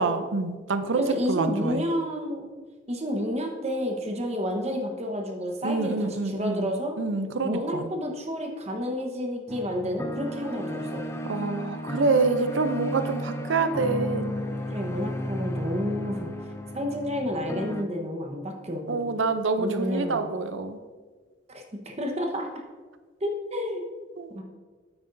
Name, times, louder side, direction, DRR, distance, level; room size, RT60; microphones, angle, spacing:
voice 1, 0.0-1.8 5.6-6.7 7.0-7.9 11.3-14.3 18.9-20.8 24.2-24.3, right 4 dB, 75° right, 9 dB, 0.6 m, -26 dB
voice 2, 1.0-2.5 2.9-7.0 7.4-11.0 14.7-16.3 16.7-19.0 19.6-20.3 21.5-22.5 23.2-23.8 24.3-24.4, equal, 35° right, 2 dB, 1.1 m, -30 dB
sound 1, 9.5-17.8, left 1 dB, 15° left, 0.5 m, -33 dB
9.4 x 8.8 x 2.7 m, 1.4 s
head